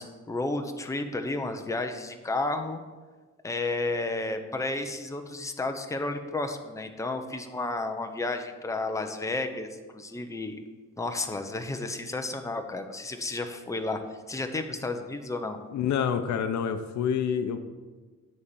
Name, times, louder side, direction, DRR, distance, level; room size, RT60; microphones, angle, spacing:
voice 1, 0.0-2.8 3.4-10.6 11.0-14.0 14.3-15.6, left 2 dB, 10° left, 5 dB, 0.8 m, -32 dB
voice 2, 15.7-17.6, left 7 dB, 70° left, 9 dB, 0.8 m, -27 dB
9.6 x 4.3 x 7.0 m, 1.3 s
cardioid pair, 90°, 30 cm